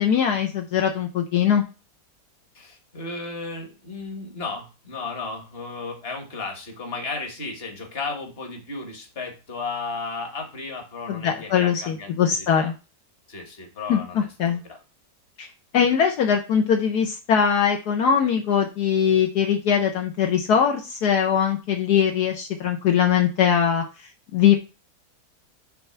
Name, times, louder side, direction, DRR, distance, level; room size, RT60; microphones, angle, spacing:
voice 1, 0.0-1.6 11.1-12.7 13.9-14.6 15.4-15.5 15.7-23.8 24.3-24.6, left 8 dB, 75° left, 3 dB, 1.3 m, -21 dB
voice 2, 2.5-12.7 13.3-14.3 14.7-14.8, left 3 dB, 35° left, 3 dB, 1.6 m, -34 dB
6.6 x 3.5 x 5.8 m, 0.31 s
omnidirectional pair, 1.8 m